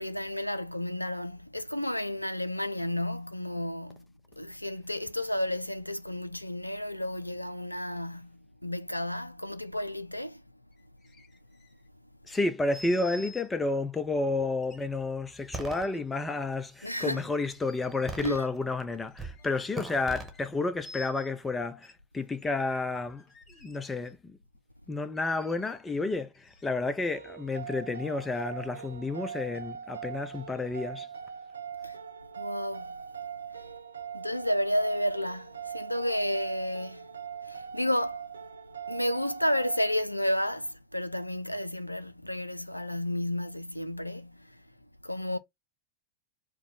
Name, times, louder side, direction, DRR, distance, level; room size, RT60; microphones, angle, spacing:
voice 1, 0.0-10.4 16.8-17.2 18.2-18.4 31.8-32.0 32.4-33.0 33.5-33.7 34.1-37.1 37.4-38.3 38.9-44.6 45.0-45.4, left 1 dB, 85° left, 0.4 m, -32 dB
sound 1, 10.7-12.0 12.7-13.5 14.6-16.0 17.4-18.5 18.9-19.8 20.3-20.5 20.8-21.3 21.8-21.9 22.4-24.1 25.1-27.0 27.6-27.7, equal, 30° left, 1.3 m, -52 dB
voice 2, 12.3-23.2 23.6-24.4 24.9-31.1, left 3 dB, 10° left, 0.6 m, -31 dB
sound 2, 15.5-15.8 16.5-17.2 18.1-18.8 19.2-19.4 19.7-20.3, right 3 dB, 10° right, 1.2 m, -39 dB
sound 3, 27.1-40.0, right 7 dB, 75° right, 0.4 m, -41 dB
4.8 x 2.2 x 3.9 m
figure-of-eight pair, 90°, 0 cm